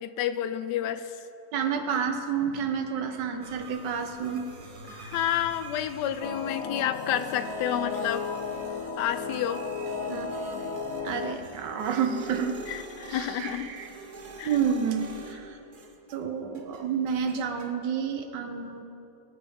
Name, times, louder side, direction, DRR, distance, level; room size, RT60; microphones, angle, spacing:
voice 1, 0.0-1.2 4.8-8.3 9.0-9.6 12.7-13.7 14.4-14.5, left 10 dB, 85° left, 12 dB, 1.2 m, -30 dB
voice 2, 1.5-4.5 10.1-10.7 11.0-12.6 13.1-13.9 14.4-15.6 16.1-18.8, right 7 dB, 90° right, 5 dB, 1.5 m, -30 dB
sound 1, 3.4-16.3 16.5-17.7, right 2 dB, 70° right, 1.6 m, -43 dB
sound 2, 6.2-11.4, left 6 dB, 65° left, 1.0 m, -35 dB
23.0 x 8.4 x 3.6 m, 2.9 s
omnidirectional pair, 1.8 m